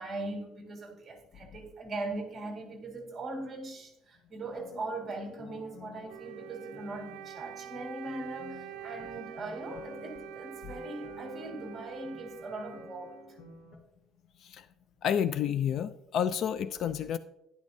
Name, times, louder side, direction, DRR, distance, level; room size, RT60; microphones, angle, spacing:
voice 1, 0.0-13.2, right 2 dB, 20° right, 1.9 m, -40 dB
sound 1, 4.6-13.8, left 4 dB, 60° left, 1.6 m, -51 dB
Wind instrument woodwind instrument, 6.1-13.6, right 11 dB, 75° right, 0.5 m, -46 dB
voice 2, 15.0-17.2, left 8 dB, 45° left, 0.4 m, -30 dB
11.5 x 11.0 x 2.7 m
cardioid pair, 175°, 0 cm